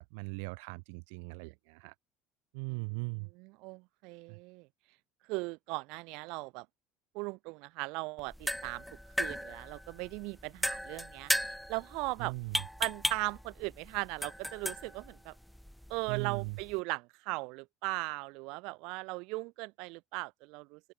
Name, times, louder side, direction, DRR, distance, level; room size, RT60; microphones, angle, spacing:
voice 1, 0.0-1.9 2.5-3.3 4.3-4.4 12.2-12.6 16.1-16.6, right 34 dB, 90° right, 2.1 m, -39 dB
voice 2, 2.7-4.7 5.3-6.7 7.1-8.8 9.2-11.3 11.7-12.3 12.8-15.3 15.9-20.8, right 27 dB, 70° right, 1.2 m, -38 dB
sound 1, 8.2-16.8, equal, ahead, 0.4 m, -37 dB
open air
cardioid pair, 145°, 0 cm